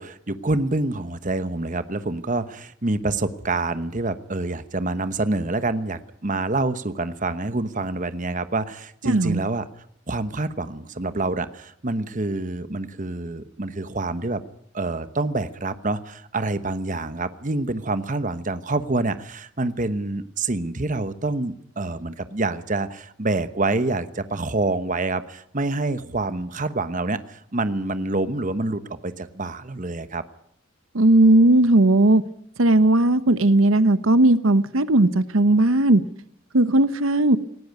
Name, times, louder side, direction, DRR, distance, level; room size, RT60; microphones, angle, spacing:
voice 1, 0.0-9.7 10.1-14.4 14.7-30.2, right 2 dB, 40° right, 1.1 m, -27 dB
voice 2, 9.0-9.4 30.9-32.2 32.6-36.0 36.5-37.4, right 2 dB, 85° right, 1.0 m, -17 dB
19.0 x 17.5 x 9.3 m
head